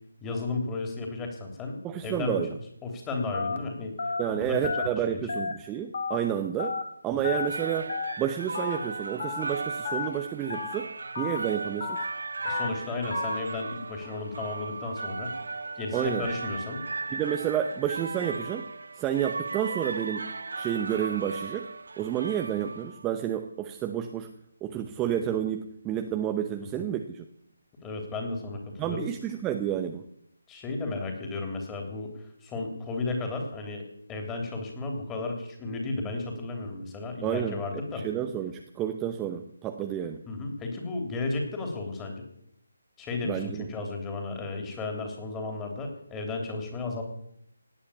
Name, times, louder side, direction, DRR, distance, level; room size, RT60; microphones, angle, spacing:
voice 1, 0.2-2.4 2.8-5.4 12.4-15.3 15.7-16.8 26.6-26.8 27.8-29.1 30.5-32.1 32.4-38.1 40.3-42.2 43.0-47.0, left 3 dB, 10° left, 3 dB, 3.3 m, -34 dB
voice 2, 1.8-2.5 4.2-6.8 7.0-10.9 11.2-12.0 15.9-16.3 17.1-18.7 19.0-21.7 22.0-24.3 24.6-27.2 28.8-30.0 37.2-37.6 37.9-40.2 43.2-43.7, right 10 dB, 15° right, 5 dB, 0.8 m, -30 dB
Telephone, 3.3-3.6 4.0-4.2 4.6-4.9 5.3-5.5 5.9-6.2 6.6-6.8 7.2-7.5 7.9-8.1 8.5-8.8 9.2-9.4 9.8-10.1 10.5-10.7 11.1-11.4 11.8-12.0 12.5-12.7 13.1-13.3, left 5 dB, 45° left, 2.3 m, -31 dB
sound 1, 7.3-23.1, right 3 dB, 60° right, 0.6 m, -36 dB
18.0 x 8.8 x 8.5 m, 0.74 s
figure-of-eight pair, 150°, 0 cm